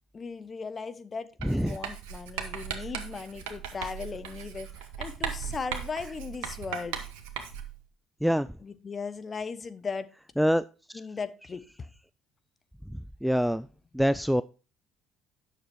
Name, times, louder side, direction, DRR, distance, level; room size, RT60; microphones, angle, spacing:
voice 1, 0.1-7.0 8.6-10.1 10.9-11.9, left 5 dB, 35° left, 12 dB, 1.0 m, -37 dB
voice 2, 1.4-1.8 8.2-8.5 10.4-10.6 12.9-13.7 13.9-14.4, equal, ahead, 16 dB, 0.3 m, -25 dB
Writing, 1.4-7.8, right 8 dB, 75° right, 1.2 m, -38 dB
9.0 x 6.6 x 4.6 m, 0.33 s
hypercardioid pair, 60°, 0 cm